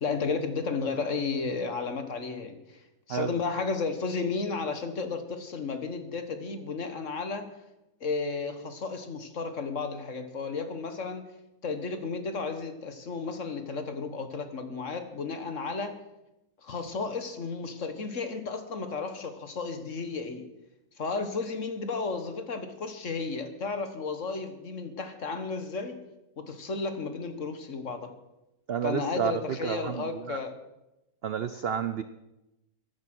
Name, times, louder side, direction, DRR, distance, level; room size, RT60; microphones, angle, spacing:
voice 1, 0.0-2.6 3.1-7.5 8.0-11.3 11.6-16.0 16.6-20.5 21.0-26.0 26.4-28.1 28.8-30.5, left 4 dB, 50° left, 8 dB, 1.6 m, -33 dB
voice 2, 28.7-30.4 31.2-32.0, right 8 dB, 70° right, 11 dB, 0.5 m, -30 dB
15.0 x 11.5 x 6.2 m, 0.94 s
omnidirectional pair, 1.8 m